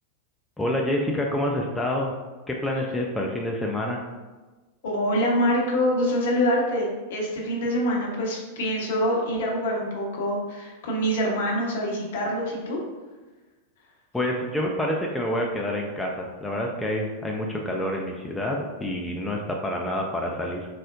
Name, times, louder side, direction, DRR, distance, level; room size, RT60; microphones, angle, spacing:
voice 1, 0.6-2.1 2.5-4.0 14.1-20.7, left 1 dB, 5° left, -1 dB, 0.3 m, -27 dB
voice 2, 4.8-12.8, equal, 55° left, -1 dB, 0.7 m, -25 dB
3.7 x 2.0 x 2.4 m, 1.2 s
figure-of-eight pair, 90°, 0 cm